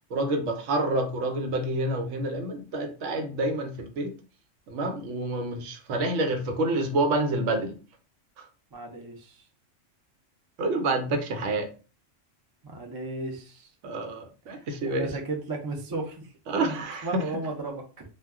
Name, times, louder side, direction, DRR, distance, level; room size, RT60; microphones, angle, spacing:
voice 1, 0.1-4.1 4.7-7.7 10.6-11.7 13.8-15.1 16.5-17.2, right 2 dB, 75° right, 6 dB, 0.9 m, -28 dB
voice 2, 8.7-9.4 12.6-13.7 14.5-16.3 16.6-16.8 17.0-18.0, right 2 dB, 35° right, 2 dB, 0.3 m, -35 dB
2.2 x 2.1 x 3.4 m, 0.34 s
omnidirectional pair, 1.3 m